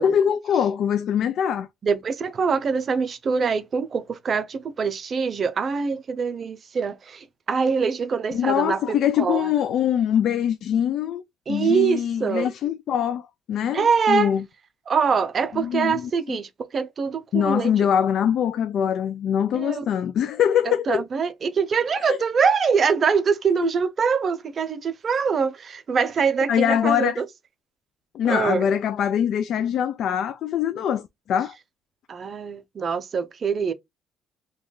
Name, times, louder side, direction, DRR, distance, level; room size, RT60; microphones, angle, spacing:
voice 1, 0.0-1.7 8.3-11.2 11.5-13.2 13.5-14.4 15.5-16.4 17.3-21.0 22.1-22.2 23.6-23.7 26.5-27.2 28.1-31.5, left 9 dB, 65° left, 0.3 m, -23 dB
voice 2, 1.8-9.5 11.5-12.5 13.7-14.3 14.9-17.7 19.5-19.8 20.7-27.3 28.3-28.7 32.1-33.7, right 6 dB, 40° right, 0.5 m, -24 dB
3.1 x 2.3 x 3.7 m
cardioid pair, 110°, 0 cm